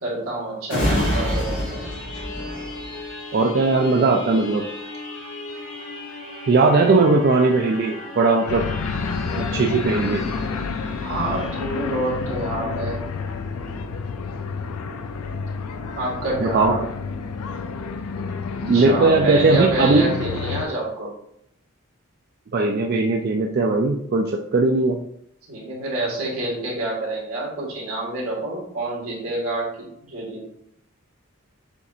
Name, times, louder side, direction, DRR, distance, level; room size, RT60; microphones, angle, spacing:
voice 1, 0.0-1.8 6.9-7.3 11.0-13.0 15.9-16.8 18.7-21.1 25.5-30.5, right 2 dB, 75° right, -4 dB, 1.7 m, -27 dB
sound 1, 0.7-14.0 14.4-14.6, left 1 dB, 55° left, 1.1 m, -32 dB
voice 2, 3.3-4.6 6.5-8.7 9.4-10.2 16.4-16.8 18.6-20.2 22.5-25.0, right 3 dB, 45° right, 1 dB, 0.3 m, -19 dB
sound 2, 8.5-20.7, left 5 dB, 85° left, 0.4 m, -29 dB
7.0 x 2.5 x 2.7 m, 0.72 s
head